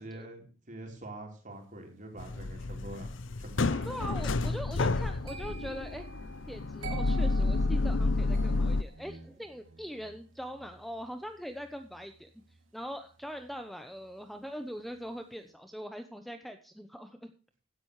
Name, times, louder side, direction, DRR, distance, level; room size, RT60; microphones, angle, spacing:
voice 1, 0.0-3.1 3.4-4.0, right 1 dB, 40° right, 2 dB, 3.9 m, -45 dB
sound 1, 2.2-8.8, left 3 dB, 65° left, 0.7 m, -30 dB
sound 2, 3.6-14.5 14.8-15.2, right 4 dB, 70° right, 2.6 m, -49 dB
voice 2, 3.8-6.1 6.5-12.3 12.7-17.3, equal, ahead, 7 dB, 0.8 m, -42 dB
16.0 x 10.5 x 3.2 m, 0.39 s
head